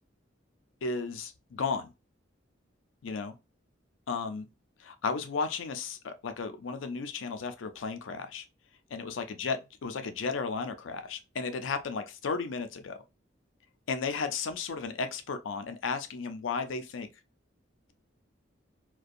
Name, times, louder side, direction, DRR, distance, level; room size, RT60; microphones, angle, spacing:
voice 1, 0.8-1.9 3.0-3.3 4.1-4.5 4.8-8.4 8.9-13.0 13.9-17.1, left 4 dB, 85° left, 0.4 m, -34 dB
2.5 x 2.2 x 2.4 m
head